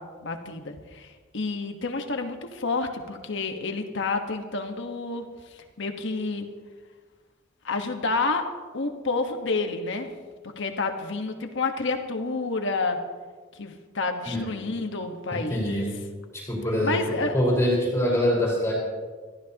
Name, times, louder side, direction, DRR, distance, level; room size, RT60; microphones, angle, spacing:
voice 1, 0.0-5.2 5.5-6.5 7.6-8.4 8.7-10.1 10.6-13.0 13.5-15.9 16.8-17.4, left 3 dB, 65° left, 5 dB, 1.4 m, -29 dB
voice 2, 15.3-15.9 16.3-18.7, left 1 dB, 15° left, -3 dB, 4.7 m, -24 dB
24.0 x 14.5 x 3.0 m, 1.5 s
head